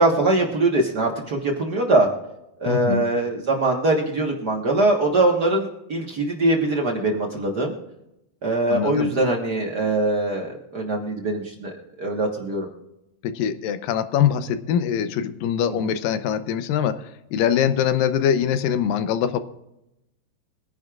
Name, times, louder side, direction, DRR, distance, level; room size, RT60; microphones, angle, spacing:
voice 1, 0.0-2.1 2.6-7.7 8.4-12.7 15.8-15.9, right 2 dB, 60° right, 1 dB, 1.0 m, -22 dB
voice 2, 2.7-3.1 8.7-9.1 13.2-19.4, left 9 dB, 80° left, 11 dB, 2.4 m, -23 dB
23.0 x 10.5 x 2.5 m, 0.87 s
omnidirectional pair, 4.1 m